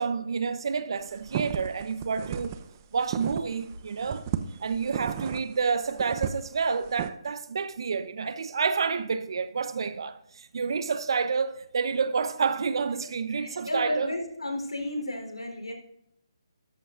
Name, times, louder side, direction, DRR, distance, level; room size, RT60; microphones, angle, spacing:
voice 1, 0.0-2.6 2.9-4.3 4.6-14.1, right 5 dB, 60° right, 0.9 m, -29 dB
sound 1, 1.0-3.7 4.0-7.1, right 9 dB, 30° right, 0.7 m, -34 dB
voice 2, 13.4-15.7, left 1 dB, 90° left, 3.7 m, -33 dB
13.5 x 12.5 x 2.5 m
figure-of-eight pair, 150°, 3 cm